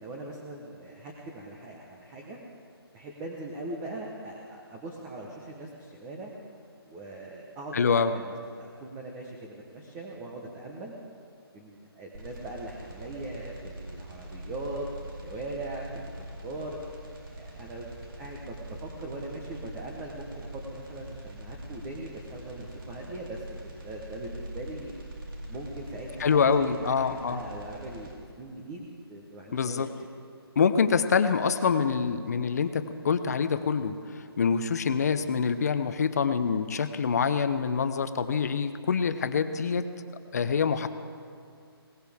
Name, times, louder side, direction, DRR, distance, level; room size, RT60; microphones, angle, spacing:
voice 1, 0.0-2.4 2.9-6.3 6.8-10.9 11.5-16.8 17.3-25.0 25.5-26.9 27.3-28.1 28.4-29.9, right 2 dB, 10° right, -1 dB, 1.0 m, -40 dB
voice 2, 7.7-8.1 26.2-27.4 29.5-29.9 30.6-39.9 40.3-40.9, left 6 dB, 40° left, 10 dB, 0.7 m, -25 dB
sound 1, 12.1-28.1, right 1 dB, 55° right, 3.4 m, -43 dB
21.0 x 18.5 x 3.5 m, 2.3 s
hypercardioid pair, 165°, 13 cm